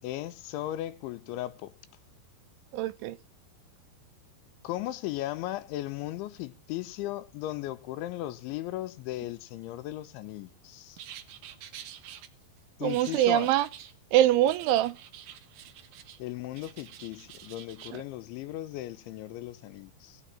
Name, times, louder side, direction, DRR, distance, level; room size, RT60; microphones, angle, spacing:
voice 1, 0.0-1.7 4.6-11.0 12.8-13.5 16.2-20.2, left 15 dB, 80° left, 3.2 m, -37 dB
voice 2, 2.7-3.2 12.8-13.7 14.1-15.0 17.9-18.0, right 13 dB, 90° right, 3.4 m, -24 dB
sound 1, 11.0-12.3 12.9-14.0 14.5-16.2 16.5-18.0, right 10 dB, 65° right, 2.6 m, -47 dB
19.0 x 6.5 x 8.8 m
omnidirectional pair, 5.4 m